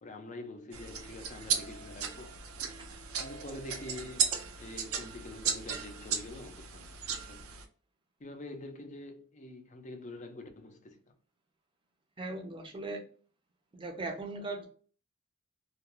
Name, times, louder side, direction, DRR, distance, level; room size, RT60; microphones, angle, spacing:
voice 1, 0.0-2.4 2.7-2.8 3.2-7.4 8.2-11.1, left 2 dB, 35° left, 0.5 m, -46 dB
sound 1, 0.7-7.6, right 7 dB, 70° right, 0.5 m, -36 dB
voice 2, 12.2-13.0 13.7-14.7, right 2 dB, 25° right, 0.6 m, -38 dB
2.4 x 2.2 x 3.0 m
head